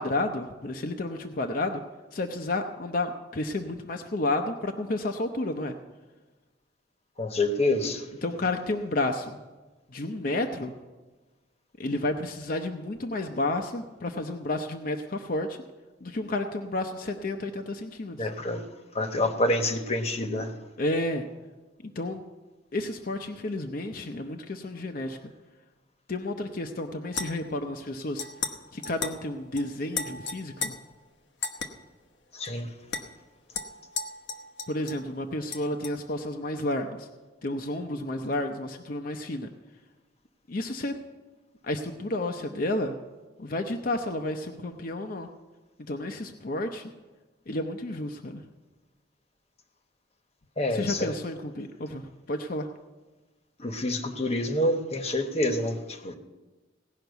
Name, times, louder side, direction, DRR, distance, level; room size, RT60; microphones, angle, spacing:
voice 1, 0.0-1.8 2.1-5.7 8.2-9.4 9.9-10.7 11.8-15.6 16.0-18.3 20.8-21.3 21.8-22.2 22.7-25.2 26.1-28.3 28.7-30.8 34.7-37.1 37.4-39.5 40.5-41.0 41.6-42.9 43.4-45.3 45.8-46.9 47.5-48.4 50.7-52.7, left 2 dB, 50° left, 5 dB, 0.7 m, -31 dB
voice 2, 7.2-8.1 18.2-18.6 18.9-20.5 32.3-32.7 50.6-51.1 53.6-56.1, left 1 dB, 35° left, 6 dB, 1.0 m, -27 dB
sound 1, 27.1-27.6 28.2-28.6 28.8-29.2 29.6-29.7 29.9-30.7 31.4-31.7 32.5-32.6 32.9-33.0 33.5-35.1 35.5-36.0, left 5 dB, 80° left, 1.0 m, -34 dB
17.5 x 5.8 x 8.0 m, 1.2 s
head